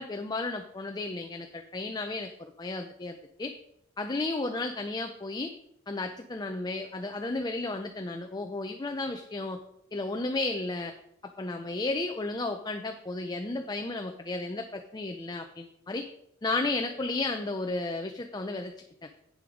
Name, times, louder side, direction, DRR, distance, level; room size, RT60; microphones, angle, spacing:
voice 1, 0.0-3.5 4.0-5.5 5.9-9.6 9.9-10.9 11.2-16.1 16.4-18.7 19.0-19.1, left 2 dB, 20° left, 5 dB, 0.4 m, -33 dB
8.5 x 7.1 x 5.0 m, 0.76 s
head